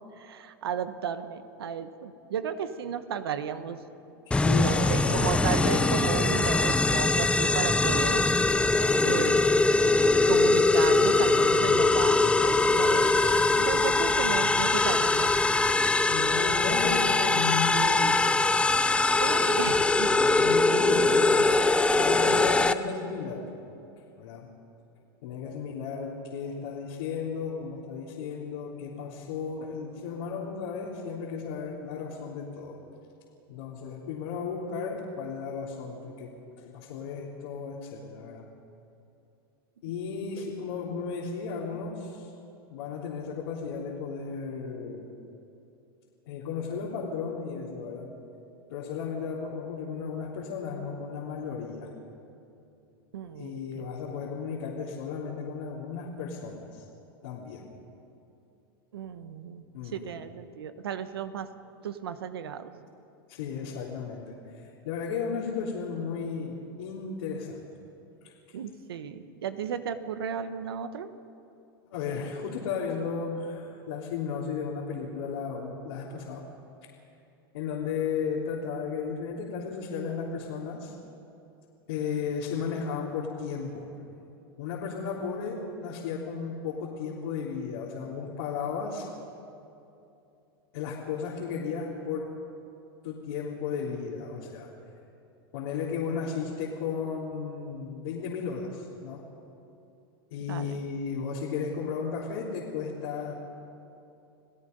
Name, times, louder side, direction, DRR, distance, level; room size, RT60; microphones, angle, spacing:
voice 1, 0.0-3.8 4.6-8.3 9.0-9.6 10.3-13.1 13.6-15.5 19.2-20.1 40.4-40.5 53.1-53.8 58.9-61.5 61.8-62.7 68.5-71.1 100.5-100.8, right 8 dB, 85° right, 10 dB, 1.3 m, -34 dB
voice 2, 4.3-5.2 5.4-6.0 13.5-13.6 16.1-18.4 20.1-21.6 22.0-23.5 24.2-24.5 25.2-32.8 33.5-38.5 39.8-42.3 42.7-45.1 46.2-48.1 48.7-51.9 53.4-56.8 57.2-57.7 59.7-60.1 63.3-67.6 68.2-68.3 71.9-76.4 77.5-80.9 81.9-83.9 84.6-89.1 90.7-92.3 93.0-94.7 95.5-99.2 100.3-103.3, left 5 dB, 75° left, -6 dB, 3.6 m, -34 dB
sound 1, 4.3-22.7, left 3 dB, 10° left, 0.7 m, -22 dB
30.0 x 17.5 x 5.4 m, 2.8 s
hypercardioid pair, 110°, 12 cm